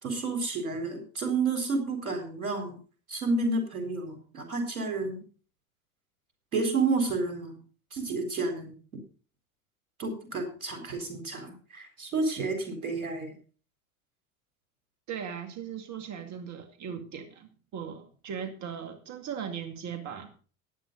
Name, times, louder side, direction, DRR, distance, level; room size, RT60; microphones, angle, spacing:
voice 1, 0.0-2.8 3.1-5.2 6.5-7.6 7.9-8.7 10.0-13.4, right 3 dB, 85° right, 5 dB, 4.1 m, -30 dB
voice 2, 15.1-20.4, right 7 dB, 40° right, 6 dB, 2.2 m, -38 dB
15.0 x 10.0 x 4.0 m, 0.38 s
hypercardioid pair, 80°, 41 cm